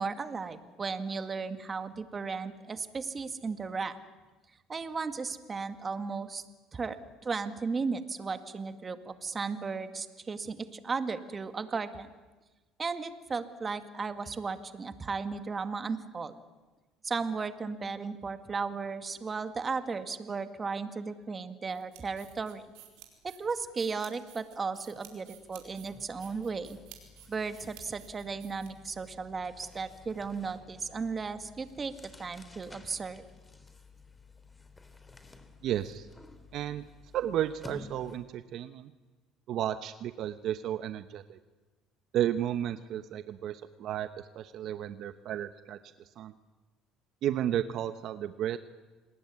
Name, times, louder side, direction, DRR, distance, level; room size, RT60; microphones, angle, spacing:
voice 1, 0.0-4.0 4.7-6.4 6.7-7.0 7.2-12.1 12.8-16.3 17.0-22.6 23.2-26.8 27.3-33.2, right 4 dB, 30° right, 10 dB, 2.0 m, -35 dB
sound 1, 21.7-29.1, right 13 dB, 80° right, 5.1 m, -54 dB
sound 2, 24.5-24.7 25.0-38.4, left 3 dB, 15° left, 3.5 m, -53 dB
voice 2, 35.6-36.1 36.5-36.8 37.1-38.9 39.5-41.4 42.1-45.8 46.2-46.3 47.2-48.6, right 11 dB, 60° right, 11 dB, 1.0 m, -33 dB
28.0 x 19.5 x 9.6 m, 1.2 s
supercardioid pair, 105°, 0 cm